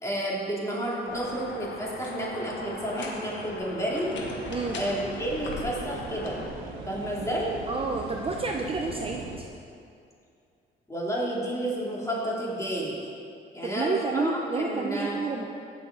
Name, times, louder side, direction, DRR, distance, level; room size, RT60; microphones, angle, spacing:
voice 1, 0.0-4.1 4.7-6.4 6.9-7.5 10.9-13.0 13.5-15.2, right 1 dB, 15° left, -4 dB, 2.9 m, -31 dB
sound 1, 1.1-6.5, left 3 dB, 65° left, 1.6 m, -39 dB
sound 2, 4.1-9.4, right 4 dB, 85° right, 1.2 m, -40 dB
voice 2, 7.7-9.2 13.6-15.5, right 4 dB, 30° right, 1 dB, 0.8 m, -29 dB
16.0 x 6.6 x 4.0 m, 2.4 s
cardioid pair, 90°, 20 cm